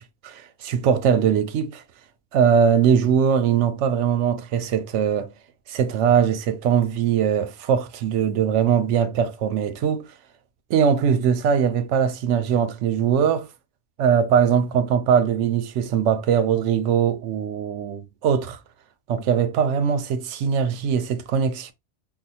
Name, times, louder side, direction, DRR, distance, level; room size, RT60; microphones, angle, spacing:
voice 1, 0.0-1.8 2.3-5.3 5.7-10.1 10.7-13.5 14.0-18.6 19.1-21.7, right 7 dB, 80° right, 0.9 m, -21 dB
4.7 x 2.1 x 2.7 m
omnidirectional pair, 1.2 m